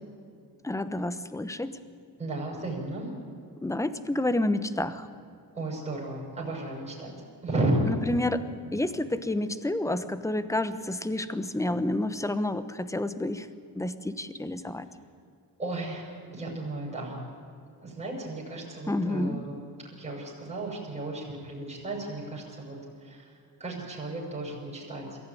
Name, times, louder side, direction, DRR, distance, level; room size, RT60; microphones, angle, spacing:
voice 1, 0.6-1.8 3.6-5.1 7.9-13.5 13.7-14.9 18.9-19.4, left 1 dB, 10° left, 13 dB, 1.1 m, -29 dB
voice 2, 2.2-3.1 5.5-7.1 7.4-7.9 15.6-17.2 17.8-25.2, right 2 dB, 15° right, -4 dB, 6.5 m, -34 dB
22.5 x 15.5 x 9.4 m, 2.4 s
cardioid pair, 105°, 38 cm